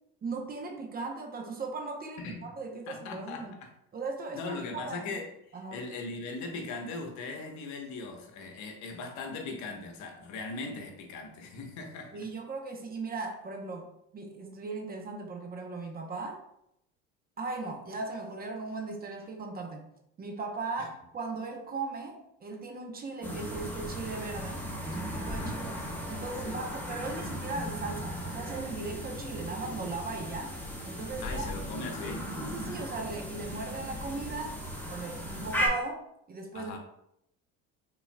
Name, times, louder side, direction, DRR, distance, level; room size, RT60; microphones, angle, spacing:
voice 1, 0.2-3.5 3.9-5.1 5.5-5.8 12.1-13.9 14.1-16.4 17.4-19.8 20.2-25.7 26.1-30.5 30.8-31.4 31.8-31.9 32.4-34.6 34.9-36.0 36.3-36.7, right 3 dB, 30° right, 3 dB, 0.8 m, -38 dB
voice 2, 2.2-2.5 2.9-3.7 4.3-12.2 20.8-20.9 25.4-25.6 26.4-26.6 31.2-32.3 36.5-36.8, left 3 dB, 65° left, 3 dB, 1.1 m, -39 dB
sound 1, 23.2-35.7, equal, 5° left, 1.3 m, -37 dB
5.6 x 4.0 x 2.2 m, 0.78 s
supercardioid pair, 100°, 31 cm